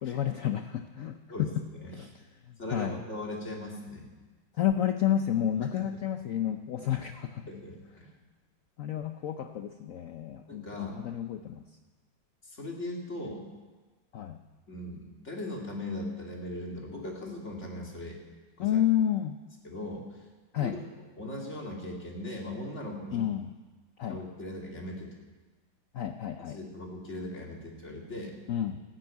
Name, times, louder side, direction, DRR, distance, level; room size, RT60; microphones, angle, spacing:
voice 1, 0.0-1.6 1.9-2.1 2.5-3.0 4.6-7.4 8.8-11.6 14.1-14.4 18.6-19.4 20.5-20.8 23.1-23.5 24.0-24.2 25.9-26.6 28.5-28.8, left 10 dB, 90° left, 7 dB, 0.7 m, -30 dB
voice 2, 2.6-4.1 7.5-8.1 10.5-11.0 12.4-13.4 14.7-18.2 18.6-18.8 19.6-20.0 20.6-20.8 21.2-23.2 24.1-25.1 26.4-28.3, left 1 dB, 35° left, -1 dB, 2.6 m, -39 dB
13.5 x 9.0 x 9.3 m, 1.3 s
omnidirectional pair, 2.2 m